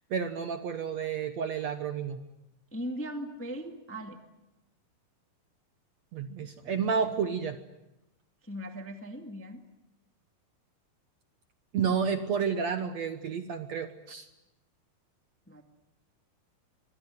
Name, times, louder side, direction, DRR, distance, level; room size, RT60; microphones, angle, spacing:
voice 1, 0.1-2.2 6.1-7.6 11.7-14.3, right 6 dB, 60° right, 8 dB, 2.0 m, -30 dB
voice 2, 2.7-4.2 7.0-7.1 8.4-9.6 15.5-15.6, equal, 5° left, 5 dB, 1.2 m, -39 dB
25.0 x 23.0 x 9.4 m, 0.94 s
omnidirectional pair, 4.2 m